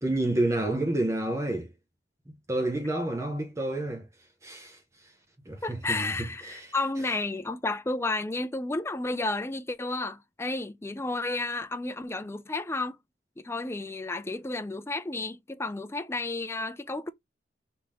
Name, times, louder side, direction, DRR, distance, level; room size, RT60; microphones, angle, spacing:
voice 1, 0.0-1.7 2.5-4.1 4.4-4.8 5.5-6.1 6.4-6.7, right 1 dB, 15° right, 0.8 m, -29 dB
voice 2, 5.6-13.0 13.4-17.1, left 2 dB, 15° left, 0.5 m, -32 dB
3.6 x 2.9 x 4.8 m
head